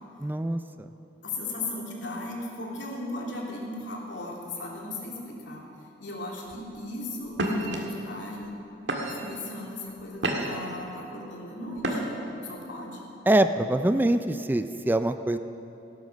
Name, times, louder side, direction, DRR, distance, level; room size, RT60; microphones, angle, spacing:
voice 1, 0.2-0.9 13.3-15.4, right 1 dB, 10° right, 10 dB, 0.3 m, -24 dB
voice 2, 1.2-5.7 6.0-8.5 9.0-12.2 12.4-13.0, left 2 dB, 80° left, -3 dB, 3.0 m, -37 dB
sound 1, 6.5-6.8 7.3-7.8 8.4-8.6 8.9-9.4 9.9-10.7 11.8-12.3, right 1 dB, 75° right, 1.8 m, -29 dB
17.5 x 9.3 x 6.4 m, 2.9 s
head